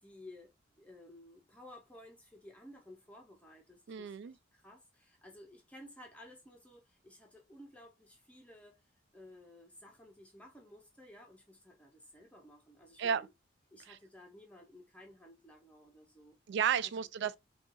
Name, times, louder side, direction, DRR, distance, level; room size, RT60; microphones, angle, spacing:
voice 1, 0.0-8.8 9.1-13.3 13.7-16.4 16.8-17.1, left 1 dB, 5° left, 0.6 m, -55 dB
voice 2, 3.9-4.4 13.0-13.2 13.9-14.0 16.5-17.4, right 8 dB, 60° right, 0.3 m, -32 dB
5.5 x 2.3 x 2.6 m
head